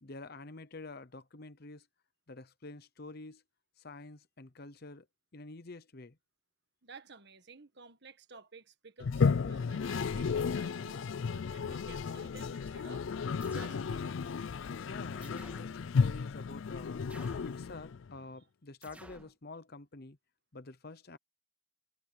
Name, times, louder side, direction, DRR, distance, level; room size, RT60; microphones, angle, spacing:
voice 1, 0.0-1.9 2.3-3.4 3.8-5.1 5.3-6.2 14.9-20.2 20.5-21.2, left 3 dB, 45° left, 0.9 m, -48 dB
voice 2, 6.8-13.1 13.4-14.2, right 3 dB, 50° right, 1.6 m, -53 dB
Toilet flush, 9.0-18.1, left 5 dB, 60° left, 0.4 m, -33 dB
sound 1, 13.4-13.9 15.2-15.8 17.1-17.6 18.8-19.3, right 1 dB, 5° right, 2.5 m, -53 dB
head